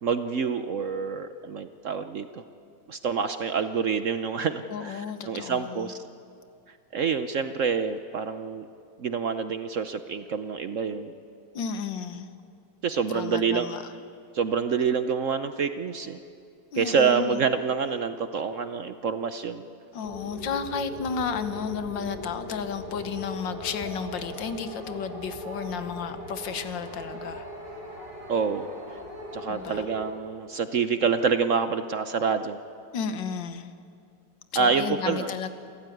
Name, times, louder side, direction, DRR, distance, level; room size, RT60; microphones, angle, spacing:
voice 1, 0.0-2.4 2.9-6.0 6.9-8.7 9.0-11.1 12.8-13.7 14.3-16.2 16.8-19.6 28.3-29.0 29.3-32.6 34.5-35.3, right 6 dB, 55° right, 10 dB, 0.9 m, -27 dB
voice 2, 4.7-5.9 11.6-12.3 13.1-13.9 16.7-17.4 19.9-27.5 29.5-29.9 32.9-33.7 34.5-35.5, left 6 dB, 80° left, 10 dB, 1.8 m, -33 dB
sound 1, 20.0-30.1, equal, 25° right, 4.4 m, -39 dB
28.0 x 14.5 x 9.3 m, 2.4 s
omnidirectional pair, 2.0 m